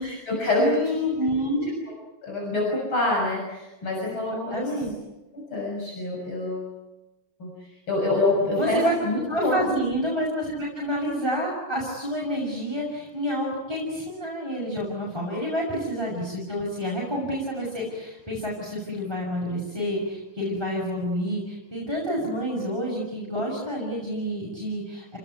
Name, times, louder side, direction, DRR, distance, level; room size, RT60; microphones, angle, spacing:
voice 1, 0.0-0.7 2.2-4.7 5.3-6.7 7.4-9.6, left 2 dB, 90° left, -2 dB, 7.2 m, -26 dB
voice 2, 0.6-1.7 4.5-4.9 8.5-8.9 9.2-25.2, equal, 10° right, -5 dB, 6.6 m, -28 dB
29.5 x 19.5 x 9.4 m, 1.0 s
omnidirectional pair, 2.2 m